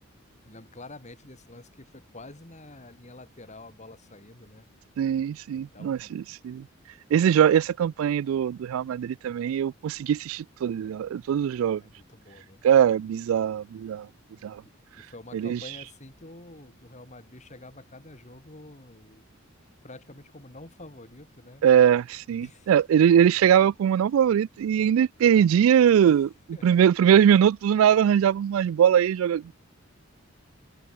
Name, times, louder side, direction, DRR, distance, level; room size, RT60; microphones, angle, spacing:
voice 1, 0.4-4.7 5.5-6.2 11.7-12.7 15.0-19.2 19.8-21.6 22.4-22.7 26.1-26.2 26.5-26.8, left 2 dB, 35° left, 3.4 m, -47 dB
voice 2, 5.0-6.7 7.1-11.8 12.6-14.1 14.4-14.6 15.3-15.6 21.6-26.3 26.6-29.5, right 9 dB, 85° right, 0.3 m, -21 dB
head